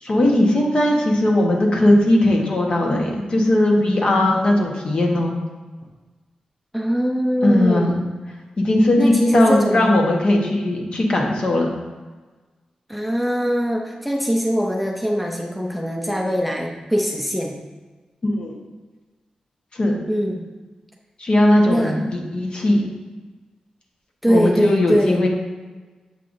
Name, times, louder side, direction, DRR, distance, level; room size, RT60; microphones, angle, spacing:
voice 1, 0.0-5.3 7.4-8.0 8.6-11.7 18.2-18.5 19.7-20.0 21.2-22.8 24.3-25.3, left 1 dB, 50° left, 0 dB, 1.1 m, -18 dB
voice 2, 6.7-8.0 9.0-9.9 12.9-17.5 20.1-20.4 21.7-21.9 24.2-25.2, equal, ahead, 0 dB, 0.5 m, -22 dB
7.5 x 5.5 x 2.5 m, 1.3 s
wide cardioid pair, 115°, 2 cm